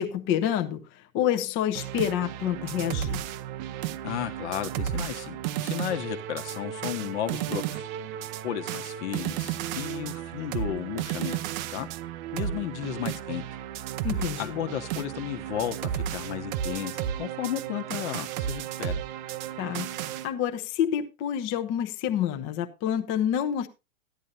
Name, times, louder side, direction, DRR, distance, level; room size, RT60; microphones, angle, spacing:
voice 1, 0.0-3.2 14.0-14.6 19.6-23.7, left 10 dB, 25° left, 0.9 m, -28 dB
sound 1, 1.7-20.3, right 11 dB, 30° right, 0.6 m, -33 dB
voice 2, 4.0-7.8 8.4-11.4 11.7-11.9 12.3-13.4 14.4-19.0, left 11 dB, 50° left, 1.4 m, -33 dB
14.0 x 10.5 x 2.6 m
hypercardioid pair, 115°, 44 cm